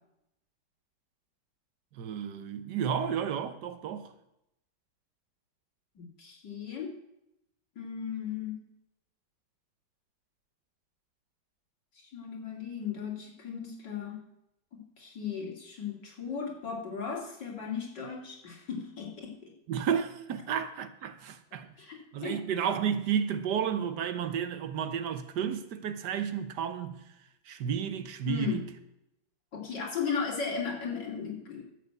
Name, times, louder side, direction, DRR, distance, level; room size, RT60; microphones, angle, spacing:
voice 1, 1.9-4.1 19.7-21.7 22.1-27.0 27.5-28.6, right 8 dB, 70° right, 1.4 m, -32 dB
voice 2, 6.0-6.9 7.8-8.6 12.0-14.2 14.7-19.5 21.8-22.4 28.3-28.6 29.5-31.6, left 6 dB, 70° left, 3.3 m, -36 dB
12.0 x 6.3 x 8.1 m
omnidirectional pair, 2.0 m